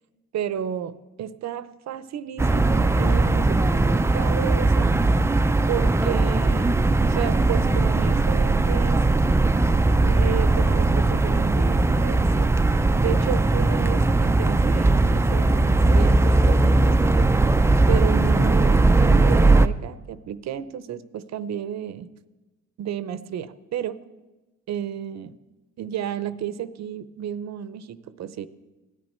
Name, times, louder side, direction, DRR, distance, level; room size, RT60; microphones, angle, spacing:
voice 1, 0.3-4.9 5.7-6.7 7.0-9.0 9.9-12.6 13.0-17.3 17.9-22.1 22.8-24.0 24.7-25.3 25.8-28.5, right 10 dB, 60° right, 15 dB, 0.7 m, -32 dB
sound 1, 2.4-19.7, right 2 dB, 10° right, 0.4 m, -19 dB
17.0 x 10.5 x 4.4 m, 1.2 s
cardioid pair, 90°, 30 cm